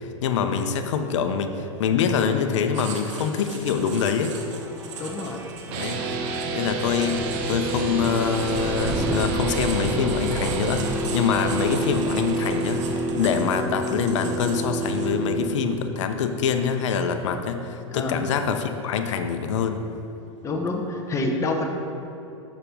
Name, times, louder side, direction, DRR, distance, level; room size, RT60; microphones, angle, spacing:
voice 1, 0.0-4.4 5.7-6.0 6.5-7.2 7.5-19.8, left 7 dB, 70° left, 7 dB, 0.7 m, -25 dB
Writing, 2.7-15.3, right 5 dB, 70° right, 1.3 m, -40 dB
sound 1, 3.1-15.9, right 2 dB, 10° right, 0.9 m, -35 dB
voice 2, 5.0-5.4 6.0-6.4 17.9-18.2 20.4-21.6, left 2 dB, 20° left, 1 dB, 0.9 m, -28 dB
sound 2, 5.7-15.5, right 3 dB, 50° right, 0.9 m, -28 dB
6.7 x 6.0 x 5.2 m, 2.9 s
hypercardioid pair, 110°, 16 cm